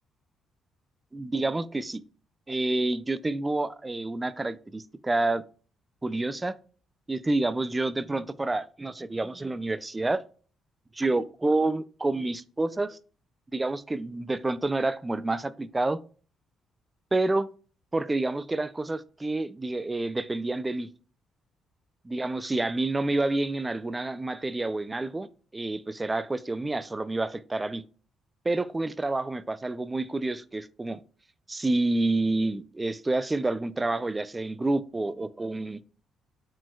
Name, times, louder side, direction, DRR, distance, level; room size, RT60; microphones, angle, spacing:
voice 1, 1.1-2.0 2.5-5.4 6.0-6.5 7.1-10.2 10.9-13.0 13.5-16.0 17.1-17.5 17.9-20.9 22.0-25.3 25.5-27.8 28.5-31.0 31.5-35.8, right 2 dB, 20° right, 0.3 m, -28 dB
4.9 x 3.7 x 2.2 m
cardioid pair, 90°, 0 cm